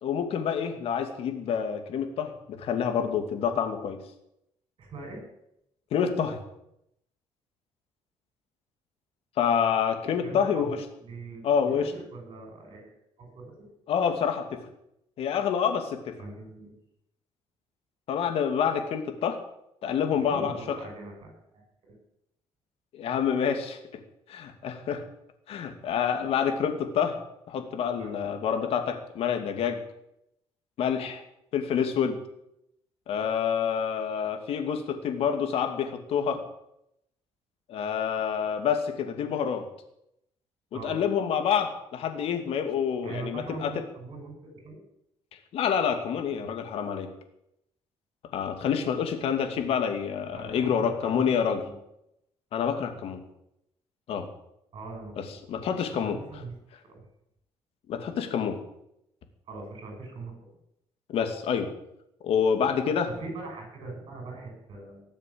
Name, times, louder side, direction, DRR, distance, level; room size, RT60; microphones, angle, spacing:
voice 1, 0.0-4.0 5.9-6.4 9.4-10.8 11.4-11.9 13.9-14.6 15.2-16.2 18.1-19.4 19.8-20.8 22.9-24.0 24.3-25.0 25.5-27.2 27.5-29.8 30.8-31.2 31.5-32.2 33.1-36.4 37.7-39.7 40.8-43.7 45.5-47.1 48.3-51.6 52.5-53.2 54.1-54.3 55.5-56.2 57.9-58.6 61.1-61.7 62.2-63.1, left 7 dB, 65° left, 6 dB, 2.6 m, -27 dB
voice 2, 4.8-5.2 10.2-12.9 13.2-13.5 16.2-16.7 20.1-21.9 28.0-28.3 40.7-41.0 43.0-44.8 50.3-50.7 51.0-51.8 54.7-55.4 55.9-56.5 56.9-57.0 59.5-60.4 63.2-65.0, right 3 dB, 50° right, 1 dB, 7.0 m, -41 dB
19.0 x 7.4 x 8.7 m, 0.80 s
cardioid pair, 115°, 11 cm